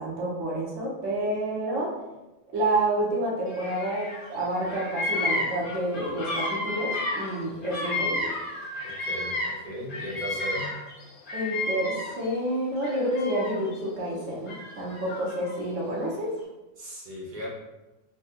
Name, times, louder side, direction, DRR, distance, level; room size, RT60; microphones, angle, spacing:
voice 1, 0.0-1.9 2.5-8.3 11.3-16.3, right 1 dB, 70° right, -4 dB, 1.0 m, -29 dB
Bird vocalization bird call bird song, 3.5-4.3 4.5-9.6 9.9-12.3 12.8-13.7 14.5-15.6, left 2 dB, 50° left, 0.8 m, -32 dB
voice 2, 8.8-10.7 16.8-17.5, equal, 40° right, -5 dB, 0.9 m, -37 dB
3.6 x 2.6 x 2.4 m, 1.0 s
omnidirectional pair, 1.4 m